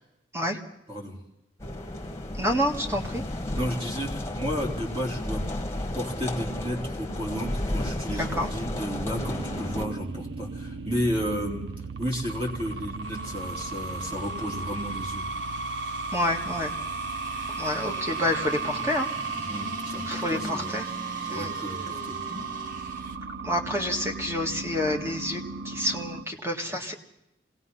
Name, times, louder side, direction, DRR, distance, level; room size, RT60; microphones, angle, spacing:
voice 1, 0.9-1.2 3.6-5.4 5.9-11.6 12.0-15.2 19.5-20.7 21.2-22.2, equal, 30° right, -1 dB, 3.8 m, -32 dB
sound 1, 1.6-9.9, left 1 dB, 15° left, 1.7 m, -33 dB
voice 2, 2.4-3.2 8.1-8.5 16.1-16.7 17.6-19.1 20.1-20.8 21.3-21.5 23.4-26.9, left 1 dB, 15° right, 2 dB, 2.0 m, -28 dB
sound 2, 9.2-26.2, right 4 dB, 70° right, 0.7 m, -35 dB
sound 3, 13.0-23.1, equal, 45° right, 2.2 m, -42 dB
26.0 x 18.5 x 5.7 m, 0.84 s
head